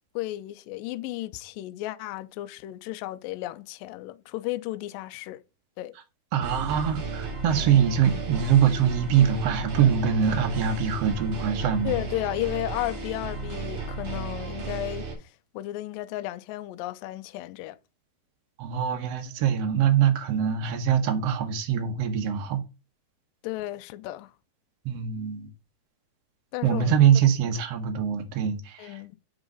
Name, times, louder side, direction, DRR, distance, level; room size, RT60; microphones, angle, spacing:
voice 1, 0.2-5.4 5.8-5.9 11.8-17.8 23.4-24.3 26.5-26.9 28.8-29.2, left 16 dB, 85° left, 2.0 m, -34 dB
voice 2, 6.3-11.9 18.6-22.6 24.8-25.5 26.6-29.0, right 8 dB, 85° right, 1.4 m, -23 dB
sound 1, 6.4-15.1, right 3 dB, 55° right, 3.8 m, -34 dB
8.1 x 4.0 x 5.2 m
omnidirectional pair, 4.6 m